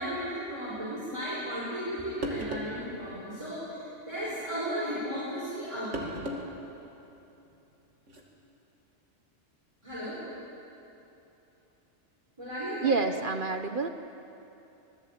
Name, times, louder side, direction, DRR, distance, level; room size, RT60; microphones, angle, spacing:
voice 1, 0.0-6.2 9.8-10.2 12.4-13.0, equal, 25° right, -7 dB, 5.0 m, -35 dB
sound 1, 1.9-2.0 2.2-2.8 4.2-4.4 5.9-6.5 6.8-6.9 8.1-8.2, equal, 70° right, 2.9 m, -36 dB
voice 2, 12.8-13.9, right 4 dB, 45° right, 8 dB, 1.0 m, -28 dB
25.5 x 19.0 x 8.8 m, 2.9 s
omnidirectional pair, 1.3 m